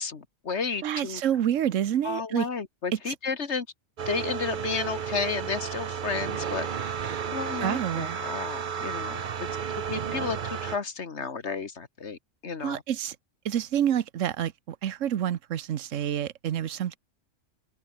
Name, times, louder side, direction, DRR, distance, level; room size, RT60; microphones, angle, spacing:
voice 1, 0.0-1.2 2.0-3.7 4.1-6.7 7.3-12.8, left 5 dB, 65° left, 2.0 m, -32 dB
voice 2, 0.8-2.5 2.9-3.1 7.6-8.2 12.6-13.2 13.4-17.0, right 10 dB, 85° right, 1.2 m, -28 dB
sound 1, 4.0-10.8, right 7 dB, 45° right, 0.9 m, -32 dB
open air
omnidirectional pair, 1.3 m